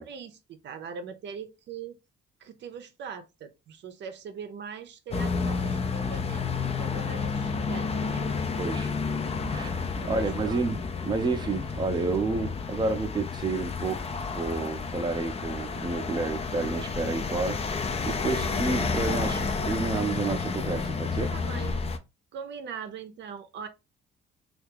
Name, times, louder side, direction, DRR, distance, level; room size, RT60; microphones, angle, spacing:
voice 1, 0.0-2.0 2.4-8.2 10.0-10.6 21.3-21.8 22.3-23.7, right 6 dB, 65° right, 0.6 m, -41 dB
sound 1, 5.1-22.0, left 4 dB, 30° left, 0.5 m, -31 dB
voice 2, 8.6-8.9 9.5-9.8 10.1-10.8 11.0-14.0 14.3-17.7 18.0-21.3, right 3 dB, 20° right, 0.6 m, -30 dB
2.7 x 2.4 x 3.5 m
cardioid pair, 90°, 20 cm